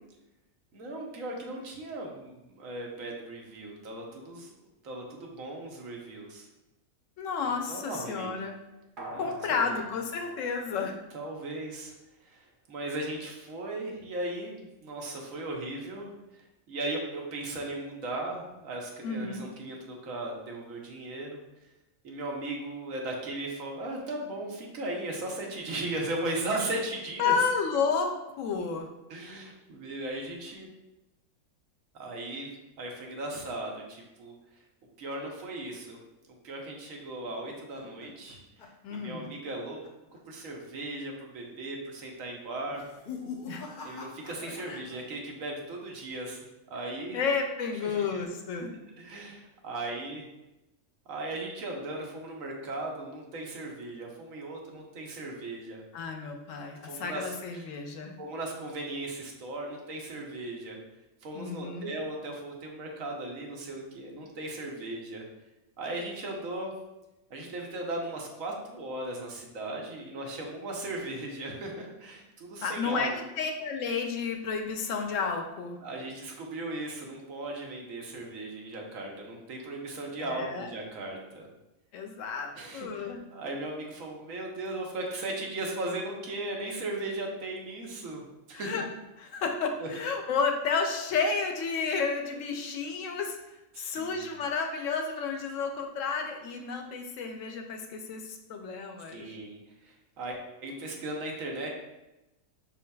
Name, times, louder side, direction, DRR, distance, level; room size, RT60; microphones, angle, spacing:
voice 1, 0.7-4.5 4.8-6.5 7.4-8.3 9.1-9.8 11.1-11.9 12.2-21.4 22.0-27.4 29.1-30.7 31.9-32.5 32.8-34.3 35.0-36.0 36.3-39.9 40.3-42.9 43.8-47.2 47.8-48.2 49.0-50.3 51.1-55.8 56.8-57.7 58.2-60.8 61.2-65.2 65.8-66.7 67.3-73.1 75.8-81.5 82.5-88.2 88.5-88.8 89.8-89.9 93.7-94.3 99.1-101.7, right 2 dB, 75° right, 0 dB, 1.2 m, -37 dB
voice 2, 7.2-8.5 9.2-10.9 19.0-19.4 27.2-28.9 38.8-39.3 43.5-43.6 44.4-44.8 47.1-48.7 55.9-58.1 61.3-61.9 72.6-73.1 73.4-75.8 80.2-80.7 81.9-83.2 88.5-88.8 89.2-93.4 93.8-99.3, left 5 dB, 75° left, 4 dB, 0.9 m, -31 dB
sound 1, 9.0-11.5 11.9-12.0, right 1 dB, 45° right, 0.8 m, -46 dB
sound 2, 37.0-39.6 39.8-40.2 40.5-40.6 41.3-41.7 42.6-45.0 45.3-45.9, left 5 dB, 50° left, 0.6 m, -44 dB
5.6 x 3.8 x 2.2 m, 0.96 s
omnidirectional pair, 1.4 m